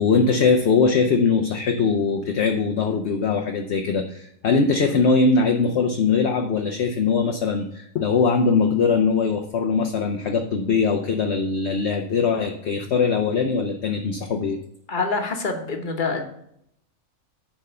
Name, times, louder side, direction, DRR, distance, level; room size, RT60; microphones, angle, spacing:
voice 1, 0.0-14.6, left 5 dB, 60° left, 3 dB, 0.9 m, -21 dB
voice 2, 14.9-16.3, left 3 dB, 40° left, 4 dB, 1.2 m, -26 dB
10.0 x 3.6 x 6.6 m, 0.75 s
omnidirectional pair, 1.4 m